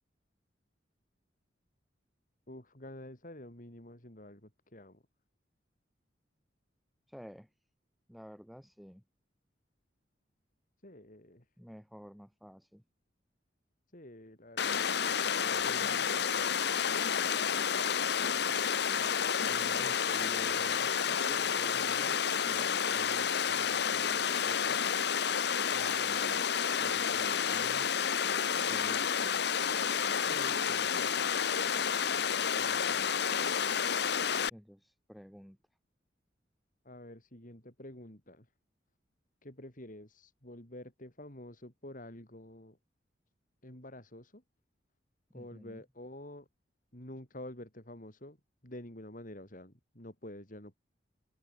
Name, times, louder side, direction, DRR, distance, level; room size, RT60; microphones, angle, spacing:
voice 1, 2.5-5.0 10.8-11.4 13.9-16.5 30.3-31.2 32.6-33.2 36.8-38.5 39.4-42.8 43.6-44.4 45.3-46.5 46.9-48.4 48.6-50.7, left 1 dB, 45° left, 4.7 m, -49 dB
voice 2, 7.1-7.5 8.1-9.0 11.6-12.8 19.0-24.8 25.7-26.4 26.8-27.9 28.6-29.2 34.5-35.6 45.3-45.8, equal, ahead, 6.4 m, -51 dB
Water, 14.6-34.5, left 7 dB, 60° left, 0.9 m, -30 dB
head